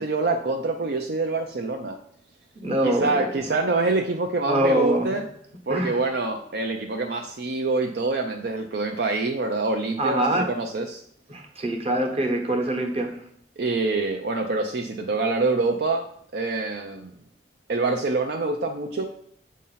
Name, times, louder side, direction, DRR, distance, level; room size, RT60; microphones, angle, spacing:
voice 1, 0.0-2.0 2.8-5.2 5.7-11.0 13.6-16.1 16.3-17.1 17.7-19.0, right 3 dB, 60° right, 3 dB, 0.5 m, -26 dB
voice 2, 2.6-3.3 4.5-5.1 5.7-6.0 10.0-10.4 11.3-13.1, right 1 dB, 35° right, 2 dB, 1.1 m, -24 dB
7.4 x 2.8 x 5.5 m, 0.66 s
head